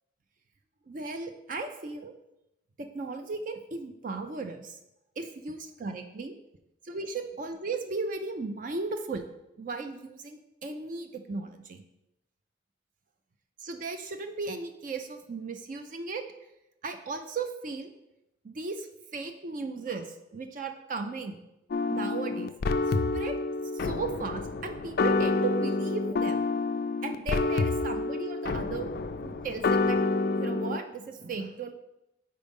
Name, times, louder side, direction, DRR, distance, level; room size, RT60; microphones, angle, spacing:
voice 1, 0.9-2.1 2.8-4.8 5.2-6.3 6.8-9.2 9.6-11.8 13.6-16.2 16.8-17.9 18.4-18.9 19.1-21.4 21.9-22.5 22.9-23.4 23.7-26.4 27.0-30.0 30.3-31.7, right 4 dB, 45° right, 7 dB, 0.4 m, -36 dB
sound 1, 21.7-30.8, left 3 dB, 50° left, 0.3 m, -28 dB
5.1 x 4.3 x 5.3 m, 0.88 s
head